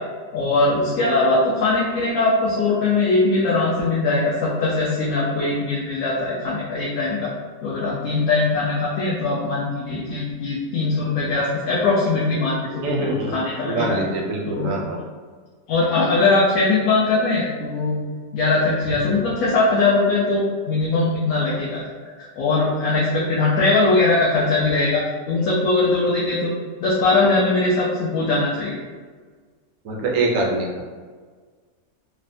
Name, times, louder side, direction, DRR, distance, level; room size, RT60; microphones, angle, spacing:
voice 1, 0.3-7.3 7.6-14.0 14.5-14.8 15.7-18.0 18.3-21.9 22.4-26.5 26.8-28.8, left 3 dB, 85° left, -6 dB, 1.0 m, -21 dB
voice 2, 12.8-15.0 29.8-30.8, right 2 dB, 75° right, -1 dB, 0.9 m, -24 dB
3.2 x 2.0 x 2.5 m, 1.5 s
omnidirectional pair, 1.5 m